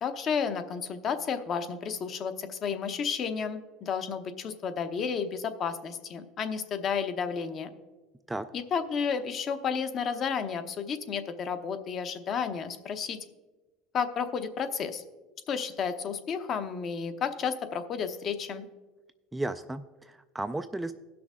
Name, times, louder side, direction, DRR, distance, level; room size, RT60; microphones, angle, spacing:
voice 1, 0.0-7.7 8.5-13.2 13.9-15.0 15.5-18.7, left 6 dB, 40° left, 9 dB, 0.8 m, -32 dB
voice 2, 19.3-20.9, right 2 dB, 10° right, 10 dB, 0.3 m, -34 dB
17.0 x 6.0 x 3.6 m, 1.2 s
cardioid pair, 135°, 0 cm